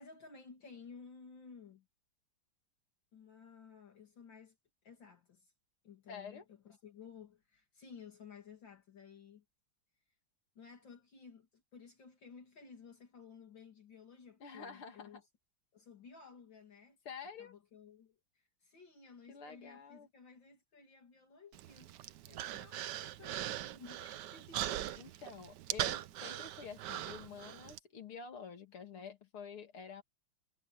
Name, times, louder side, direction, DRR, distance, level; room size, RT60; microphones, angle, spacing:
voice 1, 0.0-1.9 3.1-4.6 4.8-5.5 5.8-9.4 10.5-15.2 15.7-17.0 17.4-18.2 18.6-24.8, left 5 dB, 60° left, 3.1 m, -55 dB
voice 2, 6.1-6.4 14.4-15.2 17.0-17.5 19.3-20.1 24.9-30.0, left 6 dB, 90° left, 3.3 m, -49 dB
Human voice, 21.5-27.8, right 12 dB, 70° right, 1.2 m, -41 dB
omnidirectional pair, 2.3 m